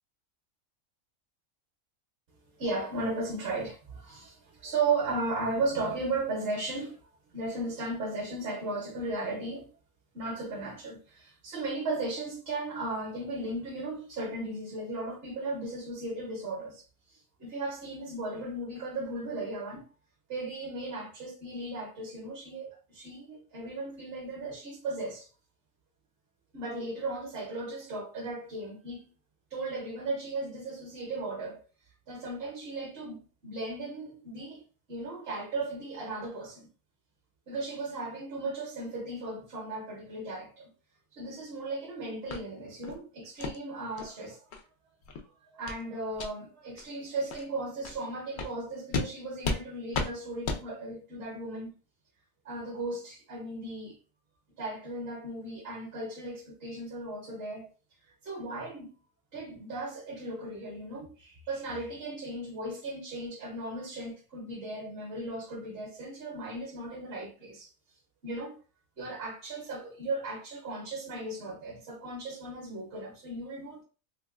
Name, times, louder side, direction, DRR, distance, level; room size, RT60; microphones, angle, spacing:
voice 1, 2.6-7.0 7.3-9.7 10.1-16.8 17.1-19.8 20.3-25.3 26.5-29.1 29.5-31.6 32.1-34.6 34.9-36.7 37.5-40.7 41.1-44.4 45.2-51.7 52.4-54.0 54.6-57.7 58.2-58.9 59.3-67.7 68.2-68.6 69.0-73.8, right 2 dB, 55° right, 0.9 m, -36 dB
sound 1, 42.3-42.4 42.8-43.0 43.4-43.6 44.0-44.1 44.5-44.6 45.0-45.2 45.7-45.8 46.1-46.3 46.8-46.9 47.3-47.4 47.8-48.0 48.4-48.5 48.9-49.1 49.4-49.6 49.9-50.1 50.4-50.6, left 3 dB, 75° left, 0.4 m, -33 dB
3.0 x 2.9 x 2.3 m
omnidirectional pair, 1.4 m